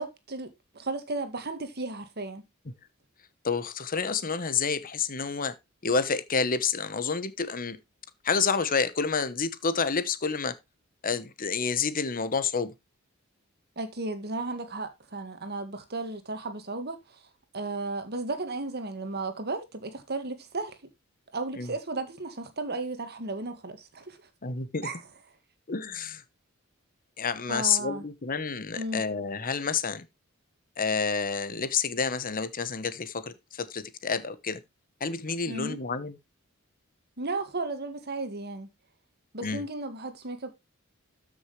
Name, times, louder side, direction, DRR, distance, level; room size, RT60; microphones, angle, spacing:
voice 1, 0.0-2.5 13.8-17.2 17.5-20.8 21.3-24.2 24.8-25.0 27.5-28.0 28.7-29.0 35.5-35.8 37.2-38.7 39.3-40.5, right 2 dB, 50° right, 1.9 m, -34 dB
voice 2, 3.4-5.5 5.8-7.8 8.2-10.5 11.0-12.7 21.6-21.7 24.4-24.9 25.7-26.2 27.2-30.1 30.8-34.6 35.0-36.1 39.4-39.6, left 5 dB, 40° left, 1.1 m, -29 dB
13.5 x 6.4 x 3.2 m
head